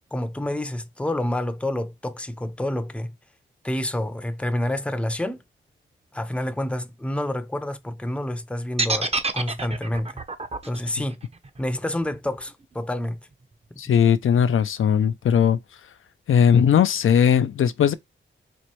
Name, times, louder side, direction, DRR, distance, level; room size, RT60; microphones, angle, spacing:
voice 1, 0.1-3.1 3.6-5.4 6.1-10.2 10.6-11.2 11.6-13.2, left 1 dB, 5° left, 0.6 m, -28 dB
sound 1, 8.8-12.8, right 3 dB, 30° right, 0.7 m, -28 dB
voice 2, 13.8-15.6 16.3-17.9, left 8 dB, 70° left, 0.5 m, -18 dB
4.3 x 2.5 x 3.0 m
cardioid pair, 65°, 21 cm